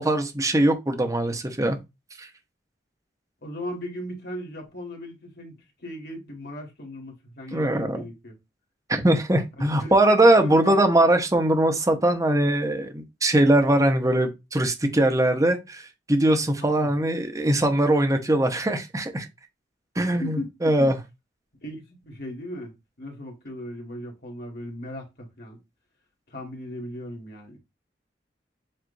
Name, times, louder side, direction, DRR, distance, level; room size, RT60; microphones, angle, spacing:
voice 1, 0.0-1.8 2.2-2.3 7.5-8.0 8.9-19.2 20.0-21.0, right 1 dB, 20° right, 0.8 m, -21 dB
voice 2, 3.4-8.4 9.6-9.9 10.3-10.8 16.6-16.9 20.2-20.9 21.6-25.6 26.3-27.6, left 1 dB, 60° left, 1.9 m, -37 dB
7.5 x 2.6 x 2.6 m
head